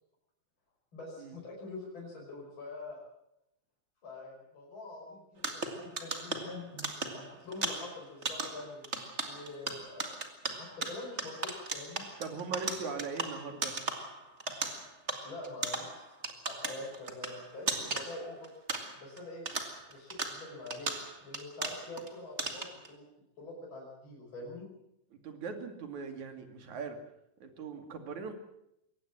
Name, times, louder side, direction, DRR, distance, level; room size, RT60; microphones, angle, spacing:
voice 1, 0.9-3.0 4.0-6.9 7.1-8.9 9.2-10.1 10.5-12.0 15.2-18.5 18.9-19.5 19.9-20.9 21.2-23.0 23.4-24.6, left 2 dB, 35° left, -3 dB, 6.5 m, -45 dB
sound 1, 5.4-19.2 19.5-22.1 22.4-22.9, right 3 dB, 25° right, 1.9 m, -38 dB
voice 2, 12.2-13.8 25.1-27.0 27.4-28.3, right 5 dB, 65° right, 6 dB, 3.8 m, -40 dB
22.5 x 18.0 x 7.5 m, 0.77 s
omnidirectional pair, 3.6 m